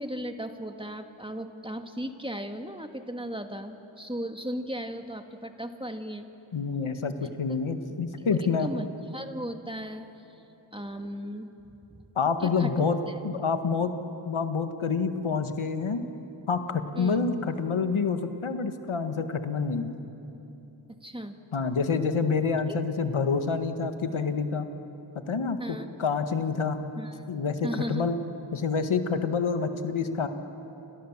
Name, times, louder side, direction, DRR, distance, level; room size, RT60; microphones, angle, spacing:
voice 1, 0.0-6.3 7.2-7.6 8.6-8.9 9.1-10.1 10.7-11.5 11.9-12.1 12.4-13.1 16.9-17.2 21.0-21.4 25.6-25.9 27.0-27.3 27.6-28.1, equal, 10° right, 5 dB, 1.9 m, -36 dB
voice 2, 6.5-8.7 12.2-13.0 13.2-13.9 14.3-16.0 16.5-19.9 21.5-24.7 25.3-26.8 27.3-28.2 28.5-30.3, left 5 dB, 80° left, 7 dB, 1.7 m, -27 dB
29.5 x 26.5 x 7.4 m, 3.0 s
cardioid pair, 50°, 48 cm